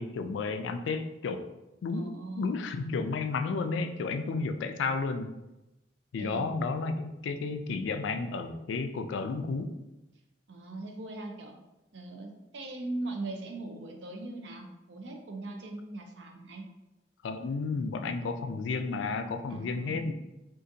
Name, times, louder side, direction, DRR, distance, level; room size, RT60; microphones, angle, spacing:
voice 1, 0.0-1.4 1.8-5.3 6.1-9.7 17.2-20.1, left 4 dB, 80° left, 8 dB, 0.3 m, -32 dB
voice 2, 1.9-2.5 6.2-6.4 10.5-11.5 11.9-16.6 19.5-20.1, right 2 dB, 75° right, 3 dB, 0.5 m, -40 dB
3.8 x 2.5 x 2.6 m, 0.97 s
head